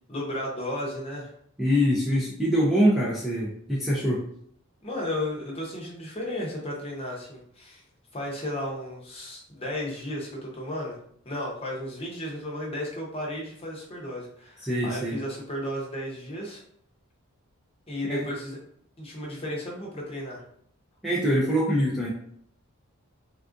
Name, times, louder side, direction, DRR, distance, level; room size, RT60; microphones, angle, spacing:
voice 1, 0.1-1.3 4.8-7.8 8.1-11.0 11.2-16.6 17.9-18.6 19.0-20.4, left 1 dB, 25° left, -2 dB, 0.7 m, -34 dB
voice 2, 1.6-4.2 14.6-15.2 18.0-18.2 21.0-22.1, equal, ahead, -7 dB, 0.4 m, -24 dB
3.5 x 2.4 x 2.4 m, 0.66 s
head